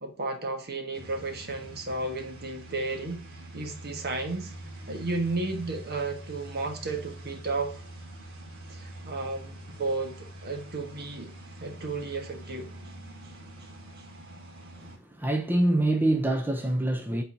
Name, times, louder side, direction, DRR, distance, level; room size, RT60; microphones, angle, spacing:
voice 1, 0.0-3.2 3.5-4.5 4.9-7.8 8.7-11.3 11.6-12.7, right 3 dB, 45° right, 1.3 m, -33 dB
sound 1, 0.9-15.0, right 1 dB, 65° right, 2.2 m, -45 dB
voice 2, 14.8-17.2, right 1 dB, 10° right, 0.6 m, -25 dB
8.5 x 4.0 x 2.7 m
head